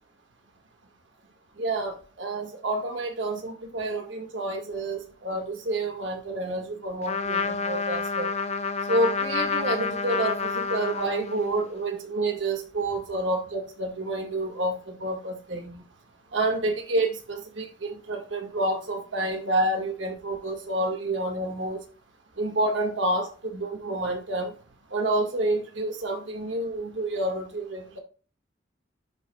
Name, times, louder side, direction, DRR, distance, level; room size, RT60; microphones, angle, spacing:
voice 1, 1.6-8.3 8.9-15.8 16.3-21.8 22.4-24.5 24.9-28.0, right 2 dB, 85° right, 3 dB, 1.7 m, -29 dB
Trumpet, 7.0-11.6, left 5 dB, 35° left, 0.5 m, -29 dB
11.5 x 4.3 x 2.3 m, 0.37 s
head